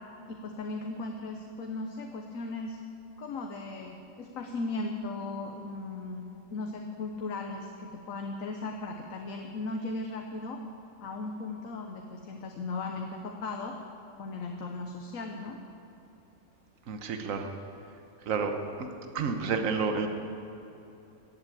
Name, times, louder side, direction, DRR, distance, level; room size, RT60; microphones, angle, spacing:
voice 1, 0.3-2.8 3.2-6.2 6.5-10.6 11.0-13.8 14.2-15.6, left 3 dB, 80° left, 3 dB, 1.3 m, -37 dB
voice 2, 16.9-17.5 18.3-18.5 18.8-18.9 19.1-20.1, right 5 dB, 80° right, 6 dB, 1.4 m, -29 dB
14.5 x 8.3 x 8.5 m, 2.9 s
omnidirectional pair, 1.4 m